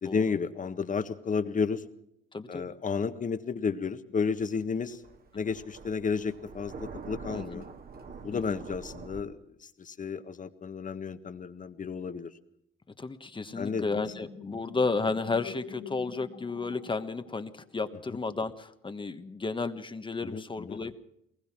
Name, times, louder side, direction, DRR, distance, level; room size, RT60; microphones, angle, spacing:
voice 1, 0.0-1.8 2.5-5.0 5.3-7.6 8.2-9.4 9.8-12.3 13.6-13.8 20.2-20.8, left 5 dB, 40° left, 10 dB, 1.6 m, -32 dB
voice 2, 2.3-2.7 5.3-5.4 7.3-7.6 8.3-8.6 13.0-21.0, left 3 dB, 25° left, 9 dB, 1.3 m, -33 dB
Thunder, 4.2-9.2, right 4 dB, 50° right, 2.1 m, -45 dB
sound 1, 13.2-17.7, left 8 dB, 85° left, 3.4 m, -46 dB
22.5 x 19.5 x 6.0 m, 0.76 s
cardioid pair, 90°, 20 cm